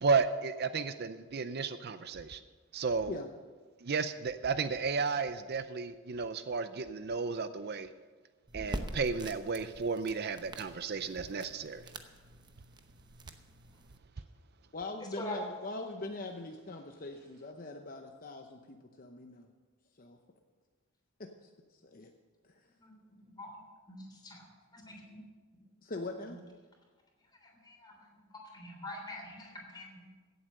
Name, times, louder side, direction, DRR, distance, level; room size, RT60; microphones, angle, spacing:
voice 1, 0.0-2.4 2.7-3.2 3.8-7.9 8.5-11.8, right 4 dB, 50° right, 11 dB, 0.5 m, -33 dB
sound 1, 8.5-14.0, right 1 dB, 20° right, 0.8 m, -45 dB
voice 2, 14.7-19.5 20.0-20.2 21.2-22.1 22.4-22.5 25.8-26.4, left 2 dB, 40° left, 4 dB, 0.8 m, -42 dB
voice 3, 23.9-24.4 24.7-25.2 27.6-27.9 28.5-30.1, left 1 dB, 20° left, 1 dB, 3.3 m, -44 dB
16.5 x 8.0 x 6.5 m, 1.4 s
head